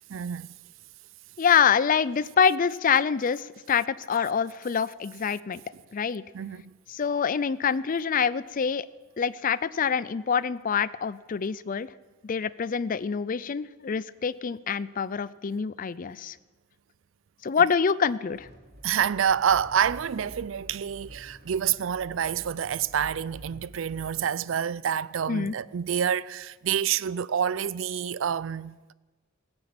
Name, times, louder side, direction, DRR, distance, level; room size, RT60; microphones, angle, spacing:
voice 1, 0.1-0.6 5.7-5.8 6.3-6.8 18.8-28.9, right 8 dB, 75° right, 0.4 m, -28 dB
voice 2, 1.4-5.6 5.9-6.2 6.9-8.9 9.2-11.9 12.2-16.4 17.4-18.5 25.3-25.5, left 6 dB, 45° left, 0.4 m, -26 dB
sound 1, 18.3-24.1, equal, 55° right, 3.6 m, -48 dB
16.5 x 9.9 x 7.7 m
head